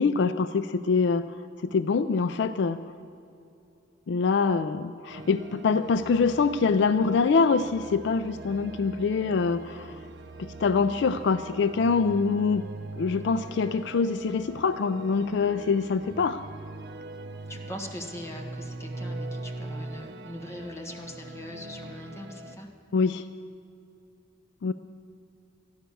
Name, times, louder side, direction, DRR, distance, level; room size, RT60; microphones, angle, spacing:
voice 1, 0.0-1.4 1.6-2.8 4.1-10.0 10.4-12.6 13.0-16.4 22.9-23.3 24.6-24.7, left 5 dB, 65° left, 12 dB, 0.4 m, -25 dB
sound 1, 5.1-22.6, right 2 dB, 60° right, 0.7 m, -41 dB
voice 2, 17.5-22.7, left 1 dB, 15° left, 1 dB, 1.5 m, -41 dB
13.5 x 10.0 x 6.9 m, 2.7 s
head